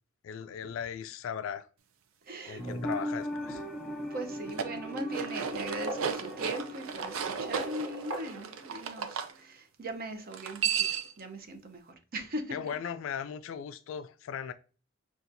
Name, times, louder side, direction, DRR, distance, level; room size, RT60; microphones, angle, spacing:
voice 1, 0.2-1.7 2.5-3.6 12.5-14.5, left 7 dB, 70° left, 0.3 m, -38 dB
voice 2, 2.2-2.9 3.4-3.6 4.0-12.7, right 1 dB, 50° right, 0.6 m, -40 dB
sound 1, 2.3-3.3 4.3-4.4 5.4-9.2, right 2 dB, 75° right, 1.0 m, -42 dB
sound 2, 2.6-8.1 8.4-8.5, equal, ahead, 0.7 m, -39 dB
sound 3, 4.4-9.3 10.3-11.2, right 7 dB, 90° right, 0.5 m, -34 dB
5.7 x 2.4 x 2.6 m
head